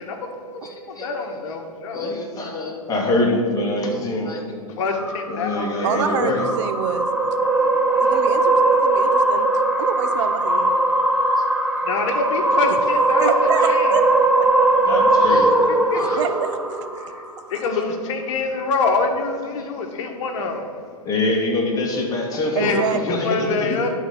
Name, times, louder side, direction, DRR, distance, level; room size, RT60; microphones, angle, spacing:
voice 1, 0.0-2.1 4.8-6.0 11.8-14.0 15.2-15.4 15.9-16.0 17.1-17.2 17.5-20.7 22.6-23.9, left 4 dB, 55° left, 4 dB, 1.4 m, -26 dB
voice 2, 0.6-1.1 1.9-4.4 5.3-6.5 7.6-7.7 8.0-8.2 11.4-11.5 13.5-13.7 14.8-16.2 19.6-19.7 21.0-23.8, left 2 dB, 20° left, -1 dB, 2.1 m, -25 dB
sound 1, 5.0-17.5, right 2 dB, 5° right, 0.8 m, -19 dB
voice 3, 5.8-7.1 8.0-9.5 9.8-10.7 12.7-12.8 13.2-14.3 15.9-17.0 22.5-23.3, right 8 dB, 50° right, 9 dB, 0.6 m, -27 dB
11.0 x 4.2 x 7.1 m, 2.2 s
hypercardioid pair, 115°, 19 cm